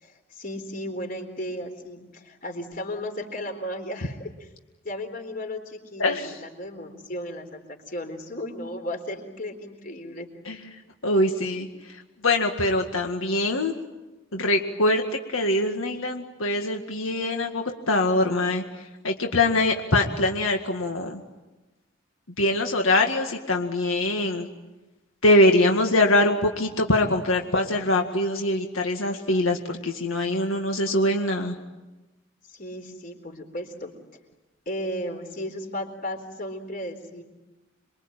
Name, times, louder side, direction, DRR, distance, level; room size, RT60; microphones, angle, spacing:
voice 1, 0.0-4.5 4.8-7.6 7.9-10.3 32.5-33.9 34.7-37.2, left 1 dB, 40° left, 5 dB, 4.0 m, -35 dB
voice 2, 11.0-11.7 12.2-13.7 14.3-15.0 15.3-18.6 19.0-21.2 22.4-24.5 25.2-31.5, left 1 dB, 85° left, 3 dB, 2.0 m, -23 dB
28.0 x 23.0 x 9.1 m, 1.1 s
head